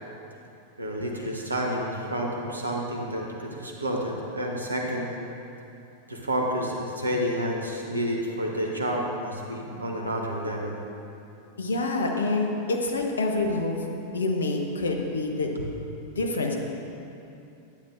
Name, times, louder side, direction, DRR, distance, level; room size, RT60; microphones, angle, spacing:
voice 1, 0.8-5.1 6.1-10.8, equal, 80° right, -1 dB, 1.1 m, -29 dB
voice 2, 11.6-13.8 14.1-15.5 16.1-16.5, left 2 dB, 70° left, 2 dB, 0.9 m, -27 dB
12.0 x 8.9 x 2.6 m, 2.7 s
figure-of-eight pair, 90°, 0 cm